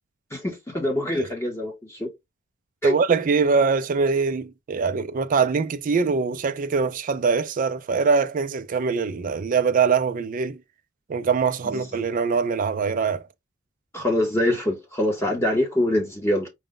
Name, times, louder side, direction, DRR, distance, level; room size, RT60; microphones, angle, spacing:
voice 1, 0.3-2.1 2.8-2.9 11.7-11.8 13.9-16.5, left 1 dB, 10° left, 0.9 m, -24 dB
voice 2, 2.8-10.6 11.1-13.2, right 5 dB, 40° right, 0.4 m, -23 dB
5.0 x 2.2 x 3.7 m
head